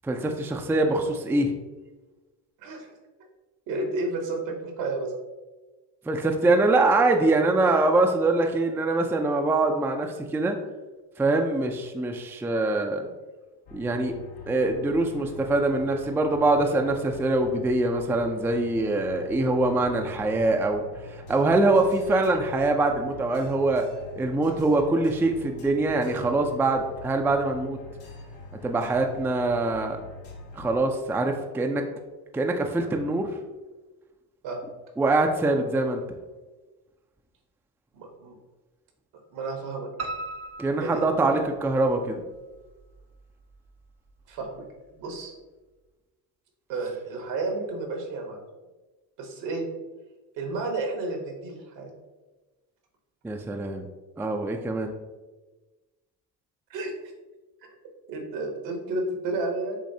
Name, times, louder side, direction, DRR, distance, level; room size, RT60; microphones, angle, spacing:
voice 1, 0.0-1.5 6.1-10.6 11.2-13.1 13.7-14.2 14.5-20.8 21.3-23.9 24.2-27.8 28.6-30.0 30.6-31.9 32.3-33.3 35.0-36.0 40.6-42.2 53.2-53.8 54.2-54.9, right 2 dB, 5° right, 4 dB, 0.3 m, -24 dB
voice 2, 2.6-2.9 3.7-5.1 34.4-34.6 37.9-38.3 39.1-39.9 40.8-41.1 44.3-44.5 44.9-45.3 46.7-48.4 49.2-49.6 50.4-51.9 56.7-56.9 58.1-59.8, right 3 dB, 70° right, 2 dB, 1.2 m, -31 dB
sound 1, 13.7-30.8, left 2 dB, 85° left, 1.1 m, -44 dB
Piano, 40.0-41.9 42.3-43.2 43.5-43.6 44.1-44.2 44.4-44.5, right 2 dB, 35° right, 0.6 m, -38 dB
7.2 x 2.6 x 2.7 m, 1.2 s
supercardioid pair, 65°, 45 cm